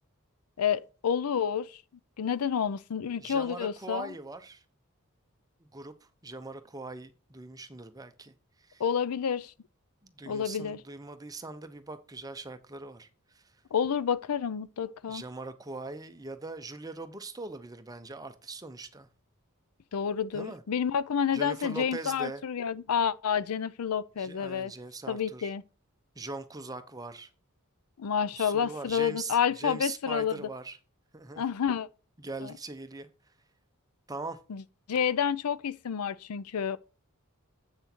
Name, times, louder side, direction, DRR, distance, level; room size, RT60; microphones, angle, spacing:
voice 1, 0.6-1.8 2.2-4.1 8.8-9.5 10.3-10.8 13.7-15.2 19.9-24.7 25.1-25.6 28.0-30.5 31.4-31.9 32.4-32.5 34.5-34.6 34.9-36.8, left 7 dB, 85° left, 0.5 m, -29 dB
voice 2, 3.2-4.6 5.6-8.8 10.0-13.5 15.1-19.1 20.3-20.6 21.3-22.4 24.2-25.5 26.2-27.3 28.3-30.8 31.1-31.5 32.2-33.1 34.1-34.4, right 3 dB, 15° right, 0.7 m, -41 dB
8.0 x 6.2 x 4.4 m
head